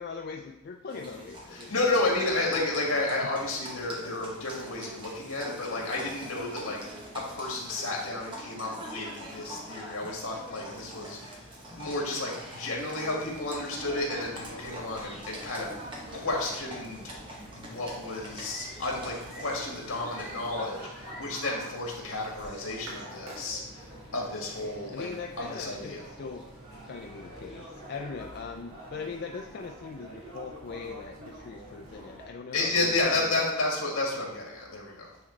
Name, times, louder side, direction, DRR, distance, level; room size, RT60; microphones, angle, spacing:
voice 1, 0.0-1.7 2.1-2.2 3.2-3.3 5.7-5.9 24.9-26.5 26.9-33.4, left 5 dB, 50° left, 3 dB, 0.3 m, -40 dB
Livestock farm animals working animals, 0.9-20.8, equal, 25° right, 1.0 m, -44 dB
voice 2, 1.5-6.8 7.1-11.5 11.8-17.0 17.4-25.1 25.4-26.0 32.5-35.1, left 2 dB, 75° left, -2 dB, 1.9 m, -32 dB
sound 1, 10.2-27.7, equal, ahead, 1.5 m, -52 dB
sound 2, 13.2-32.3, right 1 dB, 85° right, 1.8 m, -47 dB
9.5 x 3.8 x 3.2 m, 0.93 s
head